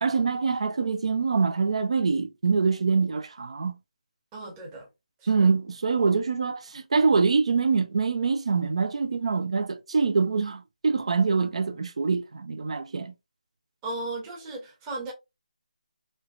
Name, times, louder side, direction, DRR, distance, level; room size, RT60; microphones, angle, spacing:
voice 1, 0.0-3.8 5.3-13.1, right 4 dB, 50° right, 0.5 m, -24 dB
voice 2, 4.3-4.9 5.2-5.5 13.8-15.1, right 2 dB, 10° right, 0.8 m, -36 dB
3.2 x 3.0 x 2.4 m
figure-of-eight pair, 165°, 4 cm